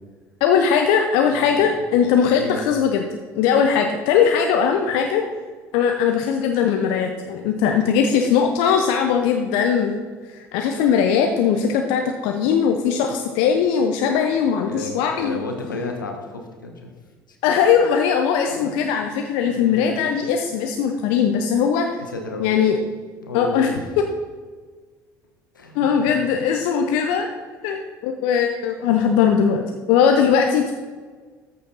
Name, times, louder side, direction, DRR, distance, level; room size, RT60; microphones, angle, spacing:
voice 1, 0.4-3.1 3.3-5.2 5.7-10.0 10.3-15.4 17.4-22.0 22.4-22.8 23.3-23.7 25.7-27.3 27.6-29.6 29.9-30.7, left 7 dB, 65° left, 4 dB, 0.8 m, -19 dB
voice 2, 1.3-1.7 2.2-2.7 14.6-16.9 17.3-17.4 18.4-18.8 19.5-19.8 22.1-22.5 23.2-23.8 25.5-25.9, left 2 dB, 85° left, 3 dB, 1.4 m, -33 dB
14.0 x 6.4 x 4.2 m, 1.5 s
figure-of-eight pair, 60°, 10 cm